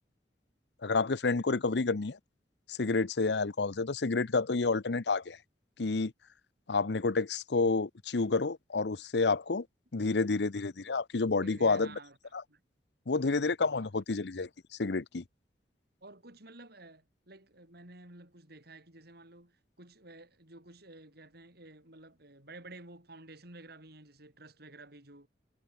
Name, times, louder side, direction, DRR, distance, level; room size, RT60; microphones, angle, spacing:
voice 1, 0.8-2.2 2.7-5.4 5.8-6.1 6.7-9.7 9.9-11.9 12.3-12.4 13.1-14.5 14.8-15.2, left 3 dB, 70° left, 0.8 m, -29 dB
voice 2, 11.4-12.2 12.5-12.6 13.7-13.9 16.0-25.3, right 2 dB, 60° right, 6.8 m, -52 dB
head